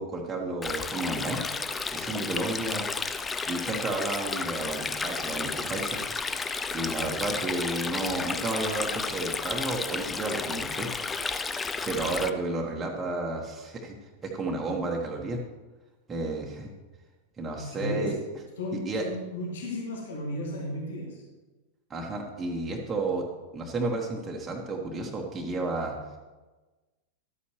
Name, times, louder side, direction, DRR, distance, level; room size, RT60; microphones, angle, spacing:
voice 1, 0.0-1.4 1.9-2.8 3.5-6.0 6.7-10.9 11.8-13.9 14.2-15.4 16.1-16.7 17.4-18.1 18.8-19.0 21.9-23.2 23.5-25.9, right 2 dB, 15° right, -1 dB, 1.3 m, -32 dB
Stream, 0.6-12.3, left 4 dB, 15° left, 0.4 m, -32 dB
voice 2, 17.6-18.1 18.6-21.2, left 1 dB, 60° left, -1 dB, 1.7 m, -34 dB
12.0 x 8.3 x 3.1 m, 1.2 s
figure-of-eight pair, 90°, 0 cm